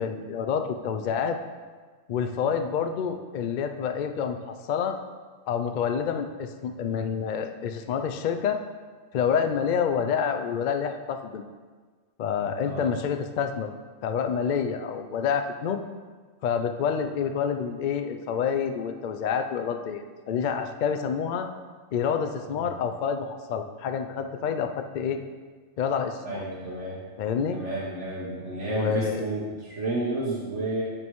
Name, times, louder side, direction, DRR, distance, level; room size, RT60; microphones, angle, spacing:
voice 1, 0.0-1.4 2.1-5.0 5.5-8.6 9.1-11.5 12.2-13.7 14.0-15.8 16.4-21.5 21.9-25.2 25.8-26.4 27.2-27.6 28.8-29.3, left 7 dB, 85° left, 7 dB, 0.4 m, -28 dB
voice 2, 12.6-12.9 26.2-27.0 27.5-30.8, right 2 dB, 65° right, -7 dB, 1.5 m, -31 dB
8.8 x 5.2 x 3.1 m, 1.5 s
omnidirectional pair, 1.4 m